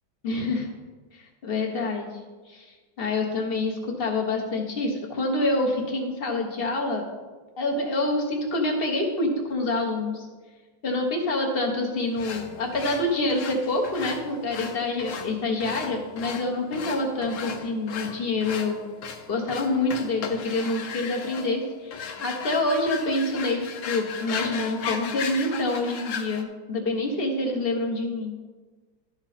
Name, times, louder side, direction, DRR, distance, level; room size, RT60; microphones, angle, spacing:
voice 1, 0.2-0.7 1.1-2.1 2.5-7.0 7.6-10.3 10.8-18.8 19.3-28.3, left 2 dB, 35° left, 1 dB, 1.1 m, -27 dB
sound 1, 12.2-26.4, left 6 dB, 70° left, 0.7 m, -36 dB
12.0 x 5.1 x 4.3 m, 1.4 s
omnidirectional pair, 2.2 m